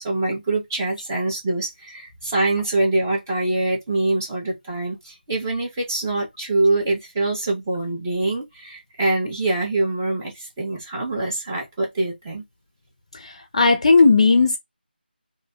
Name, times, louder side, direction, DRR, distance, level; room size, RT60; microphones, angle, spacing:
voice 1, 0.0-12.4, right 2 dB, 15° right, 1.0 m, -24 dB
voice 2, 13.1-14.6, left 4 dB, 35° left, 0.6 m, -16 dB
3.4 x 2.6 x 2.3 m
figure-of-eight pair, 165°, 6 cm